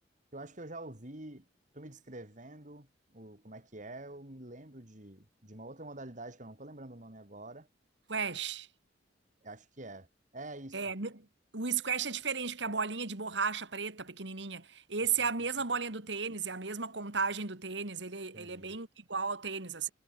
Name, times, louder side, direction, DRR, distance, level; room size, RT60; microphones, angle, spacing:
voice 1, 0.3-1.5 1.7-7.7 9.4-10.1 10.3-10.9 15.2-15.3 18.3-18.8, right 2 dB, 40° right, 3.6 m, -47 dB
voice 2, 8.1-8.7 10.7-11.3 11.5-19.9, right 5 dB, 65° right, 2.3 m, -34 dB
head